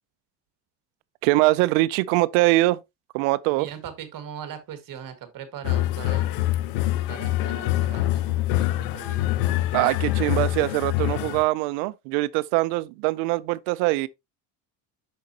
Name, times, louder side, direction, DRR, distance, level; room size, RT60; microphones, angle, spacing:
voice 1, 1.2-2.8 3.1-3.7 9.7-14.1, right 19 dB, 80° right, 0.6 m, -22 dB
voice 2, 3.6-6.4 7.1-9.2, right 8 dB, 45° right, 1.8 m, -40 dB
sound 1, 5.6-11.4, left 15 dB, 90° left, 0.7 m, -25 dB
6.6 x 6.4 x 2.8 m
cardioid pair, 120°, 46 cm